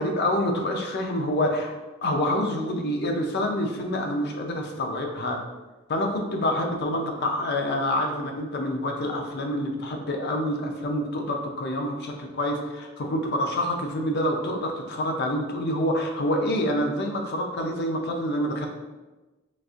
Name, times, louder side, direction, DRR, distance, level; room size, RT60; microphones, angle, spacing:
voice 1, 0.0-1.8 2.0-5.4 5.9-18.7, left 1 dB, 55° left, 2 dB, 0.5 m, -27 dB
4.1 x 2.5 x 2.4 m, 1.2 s
head